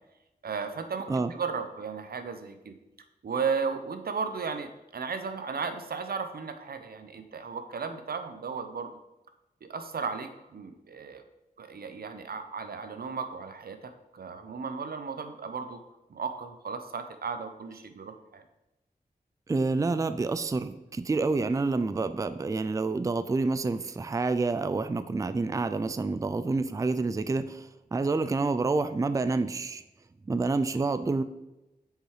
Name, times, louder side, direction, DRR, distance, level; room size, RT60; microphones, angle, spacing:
voice 1, 0.4-2.8 3.2-8.9 9.6-11.2 11.6-15.8 16.1-18.4, right 5 dB, 85° right, 8 dB, 0.7 m, -35 dB
voice 2, 19.5-29.8 30.3-31.2, right 3 dB, 20° right, 11 dB, 0.3 m, -28 dB
6.7 x 4.6 x 4.8 m, 0.96 s
wide cardioid pair, 90°, 15 cm